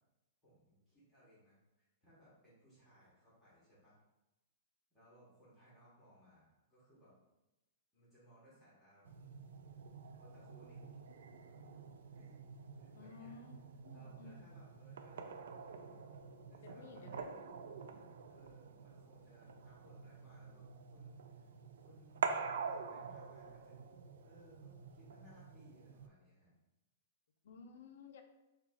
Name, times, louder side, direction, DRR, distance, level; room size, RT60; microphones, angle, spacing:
voice 1, 0.4-4.0 4.9-7.1 7.9-9.5 10.2-10.8 12.1-12.4 12.8-13.4 13.9-15.9 16.4-17.9 18.3-23.9 24.2-26.5, right 1 dB, 10° left, -10 dB, 1.1 m, -65 dB
sound 1, 9.0-26.1, right 5 dB, 75° right, 0.3 m, -47 dB
voice 2, 12.9-14.5 16.6-17.4 27.4-28.2, left 5 dB, 65° left, 6 dB, 0.5 m, -55 dB
3.4 x 2.3 x 3.4 m, 0.98 s
supercardioid pair, 170°, 0 cm